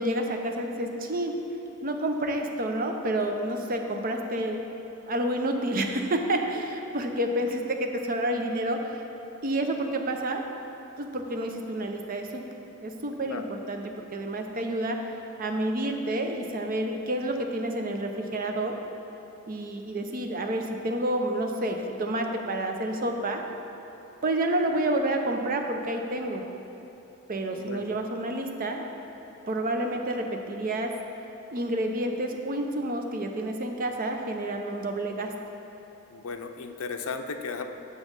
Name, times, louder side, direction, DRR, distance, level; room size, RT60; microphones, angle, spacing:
voice 1, 0.0-1.4 1.8-4.7 5.1-8.8 9.4-10.4 11.0-12.4 12.8-15.0 15.4-18.8 19.5-23.4 24.2-26.4 27.3-28.9 29.5-30.9 31.5-35.3, right 1 dB, 40° right, 3 dB, 0.6 m, -29 dB
voice 2, 27.5-28.0 36.1-37.7, left 4 dB, 80° left, 6 dB, 0.5 m, -35 dB
7.2 x 6.0 x 5.3 m, 3.0 s
head